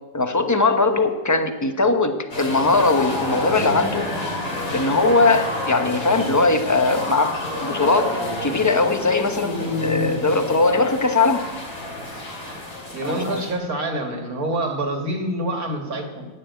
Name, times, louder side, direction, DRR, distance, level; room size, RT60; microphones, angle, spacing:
voice 1, 0.1-4.1 4.7-11.4 13.0-13.4, left 3 dB, 15° left, 7 dB, 0.8 m, -20 dB
sound 1, 2.3-13.5, left 2 dB, 85° left, 4.1 m, -29 dB
voice 2, 12.9-16.3, right 1 dB, 65° right, 3 dB, 2.4 m, -26 dB
13.0 x 9.6 x 9.3 m, 1.3 s
omnidirectional pair, 1.6 m